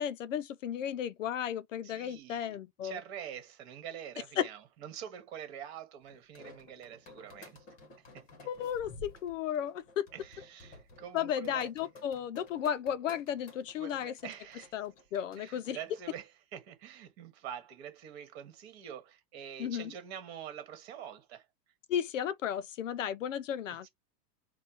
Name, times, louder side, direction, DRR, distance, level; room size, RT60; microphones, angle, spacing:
voice 1, 0.0-3.0 4.4-4.5 8.5-10.1 11.1-14.1 14.7-15.8 19.6-19.9 21.9-23.9, left 9 dB, 55° left, 0.5 m, -34 dB
voice 2, 1.8-7.6 8.0-8.3 10.1-11.7 13.8-14.8 15.4-21.5 23.7-23.9, right 9 dB, 40° right, 1.6 m, -46 dB
sound 1, 6.1-16.1, left 2 dB, 15° left, 1.1 m, -54 dB
4.3 x 2.3 x 4.6 m
supercardioid pair, 170°, 48 cm